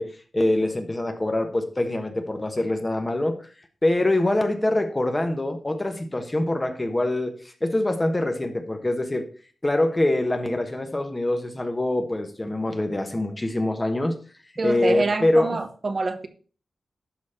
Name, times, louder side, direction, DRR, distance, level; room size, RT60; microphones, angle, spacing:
voice 1, 0.0-3.4 3.8-7.3 7.6-9.3 9.6-14.1 14.6-15.6, left 1 dB, 20° left, 6 dB, 1.3 m, -24 dB
voice 2, 14.6-16.3, right 3 dB, 40° right, 8 dB, 0.9 m, -26 dB
12.0 x 4.2 x 5.7 m, 0.40 s
wide cardioid pair, 125°, 0 cm